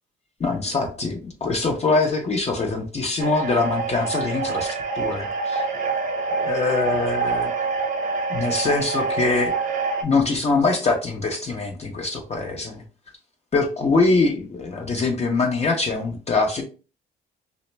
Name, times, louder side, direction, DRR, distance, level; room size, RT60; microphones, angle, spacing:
voice 1, 0.4-5.7 6.3-7.5 8.3-9.5 10.0-12.8 13.5-16.6, left 3 dB, 35° left, 3 dB, 0.6 m, -23 dB
sound 1, 3.2-10.0, right 4 dB, 40° right, 0.8 m, -26 dB
2.5 x 2.0 x 3.1 m, 0.35 s
cardioid pair, 90°, 20 cm